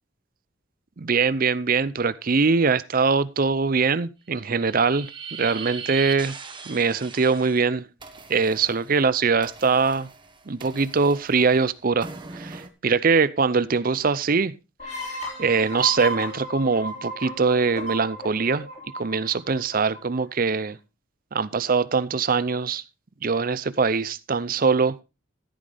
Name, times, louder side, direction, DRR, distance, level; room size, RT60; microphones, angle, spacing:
voice 1, 1.0-5.1 5.4-6.4 6.7-7.8 8.3-10.1 10.5-12.1 12.3-14.5 14.9-18.7 19.0-20.8 21.3-22.8 23.2-25.0, right 4 dB, 45° right, 0.6 m, -22 dB
sound 1, 4.4-7.6 8.0-12.7, right 6 dB, 25° right, 1.3 m, -40 dB
sound 2, 14.8-20.2, equal, 35° left, 3.5 m, -34 dB
14.0 x 8.8 x 3.4 m
head